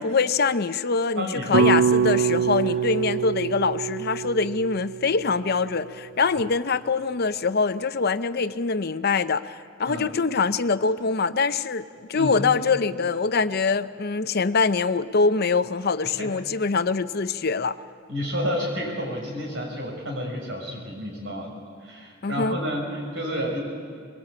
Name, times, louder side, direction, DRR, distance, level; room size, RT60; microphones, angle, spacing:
voice 1, 0.0-17.8 22.2-22.6, left 4 dB, 55° left, 12 dB, 0.7 m, -24 dB
voice 2, 1.2-1.8 9.8-10.1 12.1-12.4 16.2-16.3 18.1-21.5 21.8-23.6, equal, 85° right, 0 dB, 6.6 m, -30 dB
sound 1, 1.5-5.8, right 6 dB, 65° right, 0.6 m, -24 dB
23.0 x 22.5 x 8.6 m, 2.1 s
head